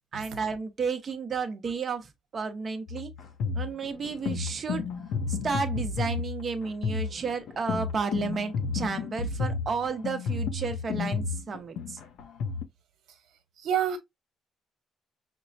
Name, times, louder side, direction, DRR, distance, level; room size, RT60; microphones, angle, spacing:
voice 1, 0.1-3.1 3.6-4.8 5.3-12.0, right 5 dB, 35° right, 0.7 m, -32 dB
sound 1, 2.9-12.6, left 5 dB, 75° left, 0.6 m, -32 dB
voice 2, 13.6-14.0, right 9 dB, 85° right, 1.0 m, -27 dB
5.9 x 2.1 x 2.6 m
cardioid pair, 165°, 0 cm